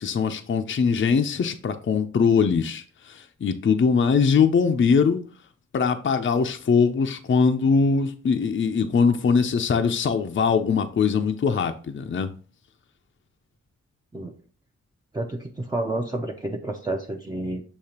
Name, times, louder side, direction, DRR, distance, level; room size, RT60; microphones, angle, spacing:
voice 1, 0.0-5.2 5.7-12.3, left 5 dB, 40° left, 0.5 m, -22 dB
voice 2, 15.1-17.6, right 2 dB, 15° right, 0.5 m, -30 dB
6.5 x 2.9 x 2.8 m
cardioid pair, 75°, 29 cm